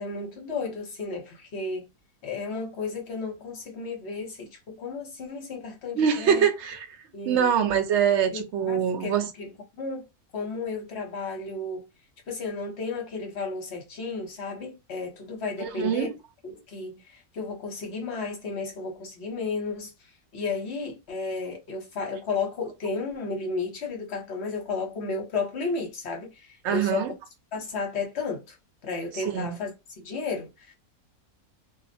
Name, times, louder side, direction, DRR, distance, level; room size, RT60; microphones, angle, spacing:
voice 1, 0.0-1.9 2.2-6.5 7.1-7.5 8.3-9.1 9.4-9.5 9.8-10.1 10.3-11.9 12.3-16.1 16.4-27.1 27.5-28.6 28.8-30.7, left 4 dB, 50° left, 1.1 m, -33 dB
voice 2, 6.0-6.8 7.3-9.3 15.7-16.1 26.6-27.1 29.3-29.6, right 8 dB, 60° right, 0.8 m, -24 dB
2.7 x 2.1 x 2.6 m
omnidirectional pair, 1.6 m